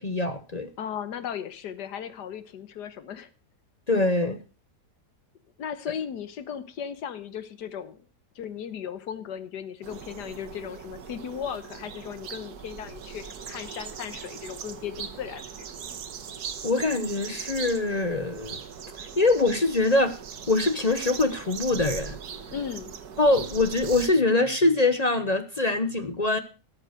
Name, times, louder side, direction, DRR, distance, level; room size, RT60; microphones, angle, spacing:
voice 1, 0.0-0.7 3.9-4.4 16.6-18.6 18.9-20.1 20.5-22.2 23.2-26.4, left 2 dB, 35° left, 10 dB, 0.7 m, -23 dB
voice 2, 0.8-3.3 5.6-8.0 8.3-15.7 22.5-22.9, left 8 dB, 85° left, 12 dB, 1.6 m, -36 dB
sound 1, 9.8-24.1, right 7 dB, 70° right, 1.7 m, -40 dB
13.0 x 7.3 x 6.4 m, 0.35 s
omnidirectional pair, 1.8 m